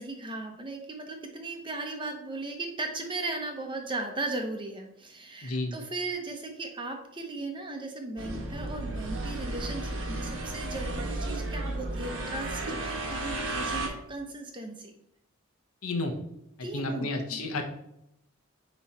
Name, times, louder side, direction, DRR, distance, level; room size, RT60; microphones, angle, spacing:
voice 1, 0.0-14.9 16.6-17.4, right 2 dB, 20° right, 3 dB, 0.8 m, -37 dB
voice 2, 5.4-5.8 15.8-16.2 16.6-17.6, left 2 dB, 75° left, 4 dB, 1.0 m, -31 dB
sound 1, 8.2-13.9, right 2 dB, 60° right, 1.1 m, -33 dB
9.3 x 3.1 x 4.2 m, 0.79 s
head